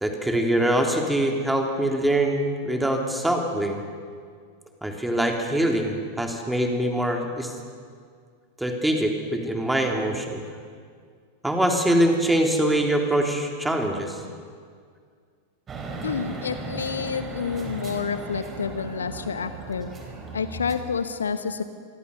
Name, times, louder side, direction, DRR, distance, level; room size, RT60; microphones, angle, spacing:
voice 1, 0.0-3.8 4.8-7.5 8.6-10.4 11.4-14.2, right 1 dB, 5° right, 2 dB, 3.3 m, -23 dB
sound 1, 15.7-20.8, right 3 dB, 20° right, 4.1 m, -36 dB
voice 2, 16.0-19.9 20.3-21.6, left 6 dB, 70° left, 10 dB, 1.2 m, -29 dB
27.0 x 22.0 x 6.8 m, 2.1 s
figure-of-eight pair, 90°, 0 cm